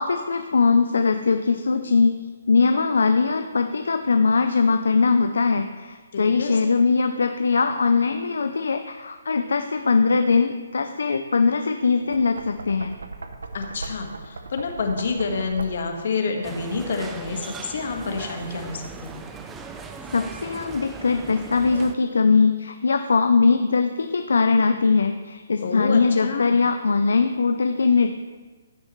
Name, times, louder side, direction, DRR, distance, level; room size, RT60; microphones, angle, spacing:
voice 1, 0.0-2.2 2.5-12.9 20.1-28.1, left 4 dB, 75° left, 7 dB, 0.5 m, -21 dB
voice 2, 6.1-6.6 13.5-19.3 25.6-26.6, left 4 dB, 60° left, 3 dB, 1.5 m, -28 dB
Knock, 12.0-16.1, right 3 dB, 80° right, 0.8 m, -38 dB
sound 1, 16.4-22.0, right 4 dB, 15° right, 0.6 m, -39 dB
15.5 x 6.3 x 3.2 m, 1.5 s
hypercardioid pair, 145°, 0 cm